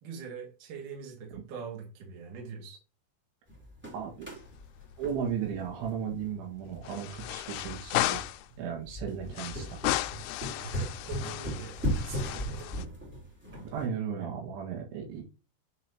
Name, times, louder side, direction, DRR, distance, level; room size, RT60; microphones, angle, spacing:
voice 1, 0.0-2.8 10.5-12.9 14.1-14.4, right 6 dB, 55° right, 3.0 m, -43 dB
sound 1, 3.5-13.9, equal, 5° right, 1.3 m, -38 dB
voice 2, 3.9-4.3 5.0-8.2 8.6-10.0 13.7-15.2, right 7 dB, 75° right, 3.9 m, -35 dB
sound 2, 4.3-5.0 5.3-5.4 6.8-8.5 9.3-12.9, left 16 dB, 85° left, 2.9 m, -34 dB
9.7 x 4.7 x 2.8 m
omnidirectional pair, 5.5 m